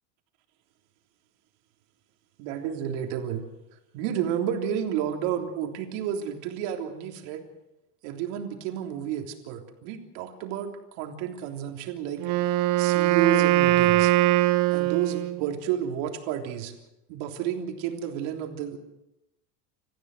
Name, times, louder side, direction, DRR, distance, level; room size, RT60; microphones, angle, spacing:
voice 1, 2.4-3.4 3.9-7.4 8.0-12.2 12.8-14.1 14.7-16.8 17.1-18.8, right 9 dB, 70° right, 3 dB, 3.5 m, -31 dB
Wind instrument woodwind instrument, 12.2-15.5, right 15 dB, 55° right, 1.3 m, -22 dB
28.5 x 15.0 x 6.7 m, 0.90 s
supercardioid pair, 135°, 36 cm